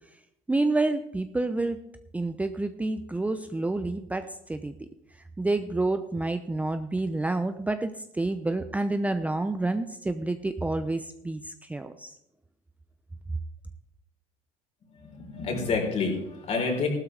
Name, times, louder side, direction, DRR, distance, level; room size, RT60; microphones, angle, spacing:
voice 1, 0.5-1.8 2.1-4.9 5.4-12.1, right 2 dB, 10° right, 9 dB, 0.6 m, -29 dB
voice 2, 15.0-16.9, left 4 dB, 45° left, 2 dB, 3.8 m, -28 dB
15.0 x 12.5 x 3.4 m, 0.79 s
supercardioid pair, 100°, 15 cm